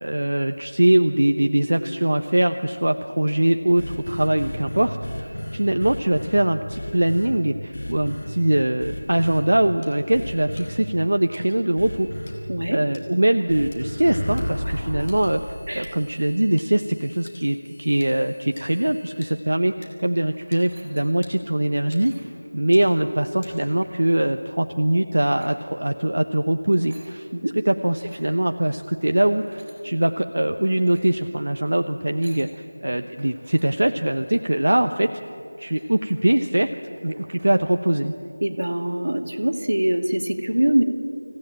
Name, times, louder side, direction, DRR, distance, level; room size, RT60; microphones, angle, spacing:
voice 1, 0.0-12.1 12.7-22.1 22.5-27.3 27.7-35.1 35.6-36.7 37.0-38.1, right 1 dB, 55° right, 7 dB, 0.9 m, -22 dB
sound 1, 3.8-6.4 6.7-7.3 7.7-8.3 8.8-9.4 10.1-10.7 11.8-12.3 13.5-19.3, equal, 85° left, 6.4 m, -33 dB
sound 2, 9.8-9.9 10.6-10.7 11.3-11.6 12.3-12.4 12.9-13.1 13.7-13.8 14.4-14.5 15.1-15.4 15.8-15.9 16.6-16.7 17.3-17.5 18.0-18.1 18.6-18.7 19.2-19.3 19.8-19.9 20.5-20.6 21.2-21.3 21.9-22.3 22.7-22.9 23.4-23.8, left 2 dB, 15° left, 1.5 m, -47 dB
voice 2, 12.5-12.8 14.7-14.8 15.7-16.0 27.3-27.5 38.4-40.8, right 1 dB, 75° right, 6 dB, 2.2 m, -23 dB
sound 3, 20.3-21.3 21.9-22.5 23.5-24.0 25.2-25.6 26.5-27.1 27.9-28.3 29.1-29.8 30.5-31.2 32.0-32.5 33.2-33.7 34.2-34.5 35.0-35.1 35.4-36.2 36.6-36.7 36.9-37.5, right 1 dB, 15° right, 2.7 m, -53 dB
25.5 x 16.0 x 8.8 m, 2.6 s
figure-of-eight pair, 180°, 0 cm